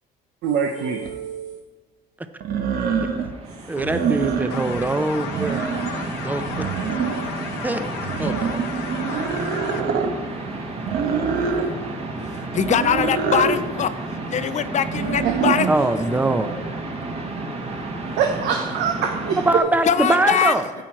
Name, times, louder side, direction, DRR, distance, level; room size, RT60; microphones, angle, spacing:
voice 1, 0.4-1.6 15.2-15.7 18.2-19.6, right 7 dB, 80° right, 3 dB, 0.9 m, -24 dB
sound 1, 1.0-1.1 2.4-3.3 3.8-4.8 5.2-6.1 6.5-7.4 8.0-10.1 10.9-11.7 12.5-13.6 14.8-15.5, right 6 dB, 65° right, 1.1 m, -25 dB
sound 2, 2.9-19.6, right 2 dB, 35° right, 1.6 m, -32 dB
voice 2, 3.7-5.6 6.2-6.4 7.6-7.8 8.2-8.6 15.7-16.5 19.5-20.6, right 2 dB, 10° right, 10 dB, 0.7 m, -22 dB
sound 3, 4.5-9.8, left 8 dB, 85° left, 1.0 m, -35 dB
voice 3, 12.3-13.9 14.3-15.7 19.8-20.5, left 8 dB, 45° left, 12 dB, 0.4 m, -22 dB
10.0 x 7.9 x 4.6 m, 1.4 s
cardioid pair, 110°, 17 cm